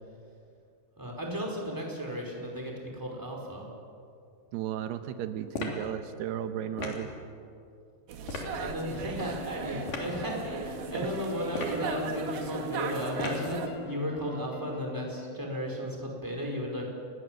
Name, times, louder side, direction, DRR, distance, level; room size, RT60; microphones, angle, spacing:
voice 1, 1.0-3.7 8.6-16.9, equal, 5° right, 0 dB, 4.7 m, -35 dB
voice 2, 4.5-7.1 8.5-8.7, right 10 dB, 85° right, 9 dB, 3.1 m, -35 dB
sound 1, 5.5-5.9 6.8-7.1 8.3-8.5 9.9-10.1 11.5-11.9 13.2-13.5, left 4 dB, 55° left, 4.7 m, -35 dB
sound 2, 8.1-13.7, right 5 dB, 70° right, 3.6 m, -37 dB
sound 3, 8.5-15.4, left 8 dB, 75° left, 1.2 m, -46 dB
29.0 x 22.0 x 7.8 m, 2.4 s
omnidirectional pair, 4.6 m